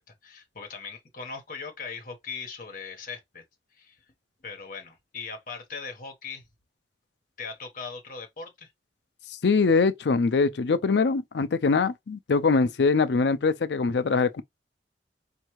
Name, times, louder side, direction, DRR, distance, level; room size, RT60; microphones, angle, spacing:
voice 1, 0.0-3.4 3.7-4.0 4.4-6.4 7.4-8.7, left 5 dB, 50° left, 1.1 m, -39 dB
voice 2, 9.4-14.4, left 4 dB, 70° left, 0.5 m, -23 dB
4.4 x 2.7 x 3.0 m
head